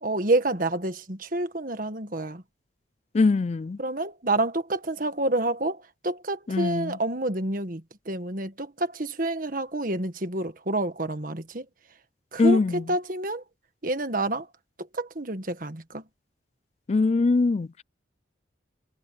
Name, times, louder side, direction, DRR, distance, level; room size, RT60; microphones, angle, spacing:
voice 1, 0.0-2.4 3.8-11.7 12.3-13.4 13.8-14.5 14.8-16.0, right 2 dB, 45° right, 1.6 m, -28 dB
voice 2, 3.1-3.8 6.5-7.0 12.4-12.8 16.9-17.8, left 3 dB, 35° left, 0.3 m, -22 dB
head